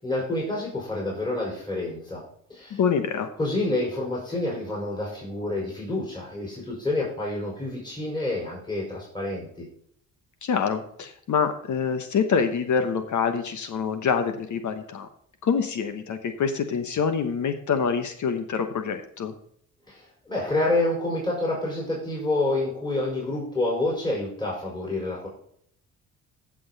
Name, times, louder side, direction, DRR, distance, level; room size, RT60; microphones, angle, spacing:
voice 1, 0.0-2.2 2.5-2.8 3.4-9.6 19.9-20.0 20.3-25.3, left 2 dB, 15° left, -4 dB, 4.8 m, -28 dB
voice 2, 2.7-3.3 10.4-15.1 15.4-19.3, left 6 dB, 60° left, 8 dB, 1.1 m, -26 dB
15.5 x 6.2 x 4.0 m, 0.66 s
cardioid pair, 95°, 34 cm